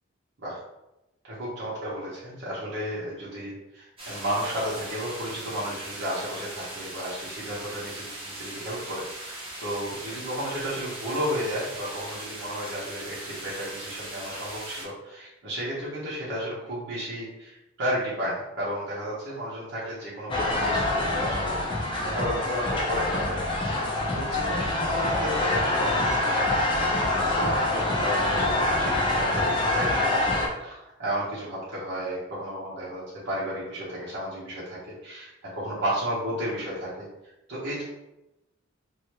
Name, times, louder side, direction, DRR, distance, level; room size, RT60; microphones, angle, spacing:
voice 1, 1.3-21.5 22.0-23.4 24.1-26.6 27.3-37.0 37.5-37.8, equal, 60° right, -8 dB, 0.9 m, -33 dB
sound 1, 4.0-14.9, right 1 dB, 25° right, 0.9 m, -39 dB
sound 2, 20.3-30.5, left 2 dB, 25° left, 0.5 m, -25 dB
3.1 x 2.7 x 2.9 m, 0.95 s
head